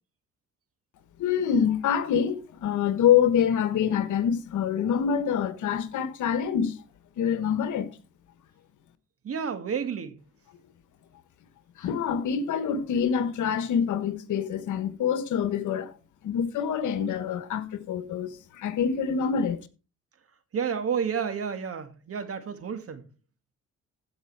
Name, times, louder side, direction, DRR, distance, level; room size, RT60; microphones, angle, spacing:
voice 1, 1.2-6.8 7.2-7.9 11.8-15.9 16.2-19.6, left 8 dB, 75° left, 1.4 m, -26 dB
voice 2, 9.2-10.2 20.5-23.0, right 7 dB, 50° right, 2.0 m, -30 dB
15.5 x 5.4 x 4.7 m
cardioid pair, 90°, 30 cm